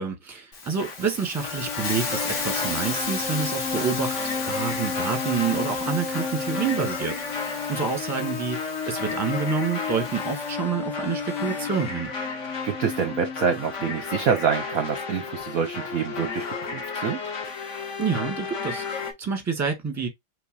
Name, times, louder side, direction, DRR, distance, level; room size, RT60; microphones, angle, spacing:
voice 1, 0.0-12.1 18.0-20.1, right 5 dB, 10° right, 1.2 m, -28 dB
Hiss, 0.5-10.5, left 4 dB, 70° left, 2.4 m, -35 dB
sound 1, 0.8-19.1, left 5 dB, 40° left, 1.3 m, -31 dB
voice 2, 12.6-17.2, right 6 dB, 60° right, 1.0 m, -26 dB
6.0 x 3.1 x 2.7 m
omnidirectional pair, 2.3 m